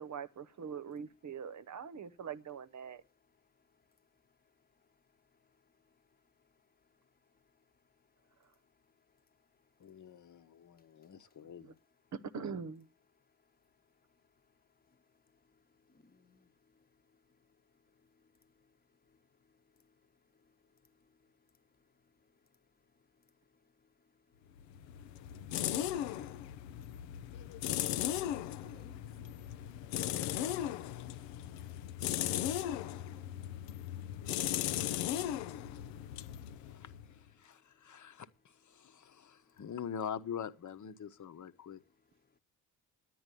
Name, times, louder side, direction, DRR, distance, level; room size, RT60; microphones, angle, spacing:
voice 1, 0.0-3.0 11.6-11.7 12.1-12.8, right 6 dB, 40° right, 1.0 m, -43 dB
voice 2, 9.8-11.8 36.6-36.9 37.4-38.3 38.7-41.8, left 8 dB, 40° left, 1.2 m, -44 dB
voice 3, 15.3-17.5 17.9-18.7 19.1-19.2 19.5-19.9 20.3-20.5 20.8-21.3 22.2-22.3 23.8-24.5 25.0-25.1 26.4-27.8 28.5-29.0 29.3-29.4 31.6-31.8 36.1-36.4 36.7-36.8 37.5-37.6 39.1-39.3, left 3 dB, 20° left, 1.2 m, -69 dB
sound 1, 24.6-37.2, left 12 dB, 80° left, 0.7 m, -37 dB
10.0 x 9.5 x 8.3 m
hypercardioid pair, 55°, 43 cm